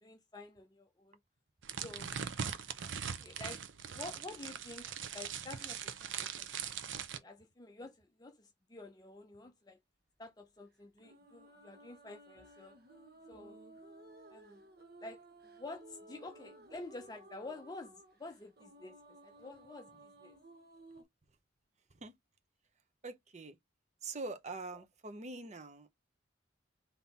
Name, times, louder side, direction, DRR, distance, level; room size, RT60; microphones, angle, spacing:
voice 1, 0.0-1.2 1.8-2.2 3.2-6.5 7.1-9.8 10.2-12.8 13.3-13.6 14.3-14.6 15.0-15.2 15.6-20.4 24.7-24.8, left 2 dB, 20° left, 0.5 m, -49 dB
sound 1, 1.6-7.2, right 7 dB, 70° right, 0.6 m, -41 dB
sound 2, 11.0-21.0, right 2 dB, 50° right, 1.1 m, -57 dB
voice 2, 23.0-23.6 24.0-25.9, right 3 dB, 35° right, 0.7 m, -44 dB
3.8 x 2.8 x 4.0 m
head